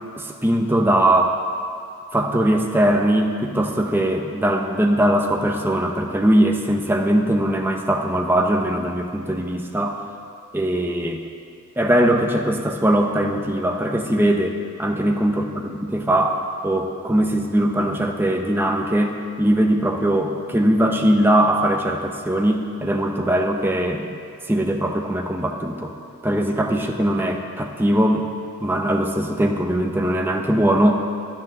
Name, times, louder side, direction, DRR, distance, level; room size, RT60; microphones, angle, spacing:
voice 1, 0.2-1.3 2.1-10.0 10.5-11.2 11.8-15.4 15.8-19.1 19.4-24.1 24.5-25.9 26.2-28.3 28.6-31.0, right 1 dB, 10° right, 2 dB, 0.9 m, -20 dB
10.5 x 9.7 x 6.7 m, 2.4 s
head